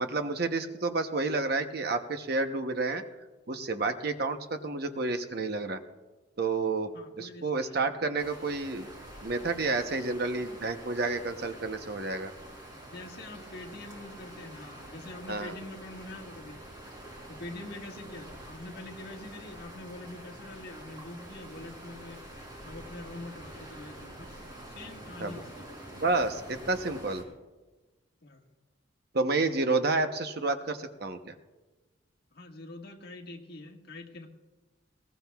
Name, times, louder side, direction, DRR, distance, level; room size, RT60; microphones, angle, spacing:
voice 1, 0.0-3.0 3.5-5.8 6.4-8.9 9.2-12.3 15.3-15.5 25.2-25.4 26.0-27.2 29.1-31.3, right 3 dB, 50° right, 7 dB, 0.8 m, -30 dB
voice 2, 6.9-7.8 12.7-16.6 17.3-22.3 22.6-25.9 28.2-28.4 32.3-34.3, left 2 dB, 50° left, 2 dB, 1.6 m, -45 dB
sound 1, 8.2-27.2, right 1 dB, 20° right, 3.3 m, -47 dB
21.0 x 17.5 x 2.3 m, 1.2 s
head